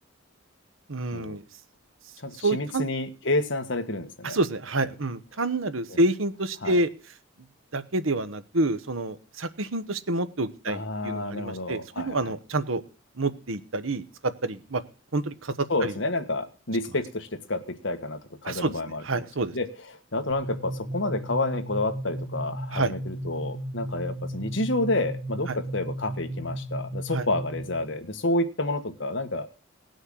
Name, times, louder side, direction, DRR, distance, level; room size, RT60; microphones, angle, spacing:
voice 1, 0.9-1.4 2.4-2.9 4.2-6.9 7.7-12.8 13.2-14.0 14.4-14.8 15.1-15.5 15.8-15.9 18.4-18.8 19.0-19.5 22.7-22.9 25.5-25.6 27.1-27.3, right 2 dB, 85° right, 12 dB, 1.2 m, -28 dB
voice 2, 2.2-4.4 5.9-6.0 6.6-6.8 10.7-12.2 15.7-19.0 19.5-19.7 20.1-29.5, left 2 dB, 65° left, 7 dB, 1.7 m, -29 dB
sound 1, 20.3-27.9, right 1 dB, 65° right, 3.7 m, -35 dB
18.5 x 6.5 x 6.4 m, 0.34 s
head